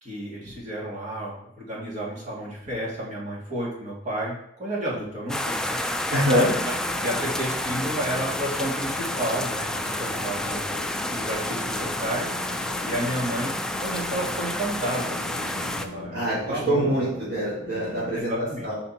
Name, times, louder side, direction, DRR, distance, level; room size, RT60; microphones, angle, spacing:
voice 1, 0.0-4.3 4.6-5.8 6.6-6.7 7.0-10.6 11.1-12.3 12.8-15.1 15.4-16.9 18.1-18.6, right 1 dB, 45° right, -5 dB, 2.0 m, -31 dB
sound 1, 5.3-15.9, left 1 dB, 5° left, 0.3 m, -30 dB
voice 2, 6.1-6.5 16.1-18.8, equal, 75° right, -11 dB, 2.5 m, -24 dB
sound 2, 6.3-18.2, left 2 dB, 65° left, 0.7 m, -40 dB
5.6 x 4.2 x 4.2 m, 0.73 s
head